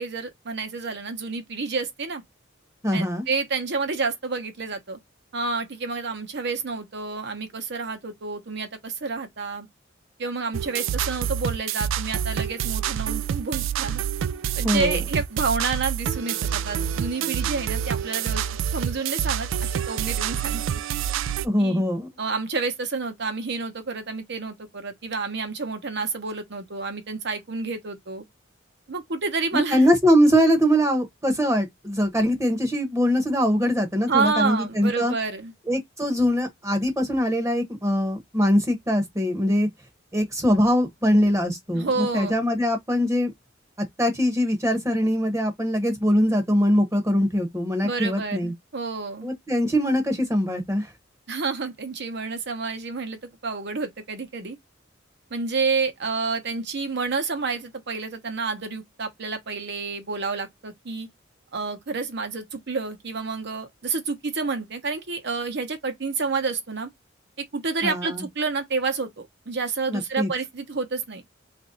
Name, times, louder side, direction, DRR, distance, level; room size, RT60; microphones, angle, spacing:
voice 1, 0.0-2.2 2.9-5.0 5.3-9.7 10.2-14.0 14.6-18.4 18.7-20.8 21.6-21.8 22.2-28.2 28.9-29.9 34.1-35.5 41.7-42.5 47.8-49.3 51.3-54.6 55.3-61.1 61.5-66.9 67.4-71.2, right 4 dB, 60° right, 0.9 m, -29 dB
voice 2, 2.8-3.3 14.6-15.0 21.4-22.1 29.5-35.1 35.7-39.7 40.1-43.3 44.0-48.5 49.2-50.9 67.8-68.2 69.9-70.3, equal, 15° right, 0.9 m, -22 dB
sound 1, 10.5-21.5, right 9 dB, 80° right, 0.3 m, -27 dB
3.1 x 2.6 x 3.9 m
head